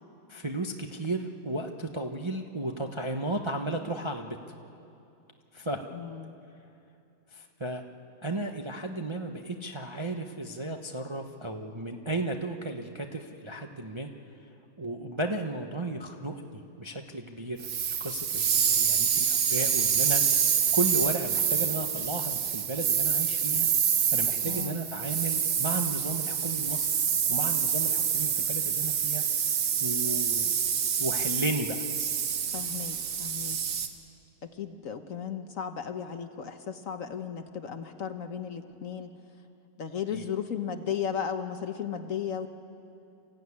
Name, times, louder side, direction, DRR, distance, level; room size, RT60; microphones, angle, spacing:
voice 1, 0.3-4.4 5.5-5.8 7.3-7.8 8.2-14.1 14.8-17.7 18.0-23.7 24.1-26.9 27.3-29.5 29.8-30.5 31.0-31.8 40.1-40.2, right 2 dB, 25° right, 3 dB, 0.7 m, -34 dB
voice 2, 5.9-6.3 24.4-24.8 32.5-33.6 34.4-39.1 39.8-42.5, left 8 dB, 55° left, 7 dB, 1.2 m, -35 dB
sound 1, 17.6-33.9, right 7 dB, 80° right, 1.8 m, -27 dB
27.0 x 15.0 x 9.7 m, 2.7 s
omnidirectional pair, 1.9 m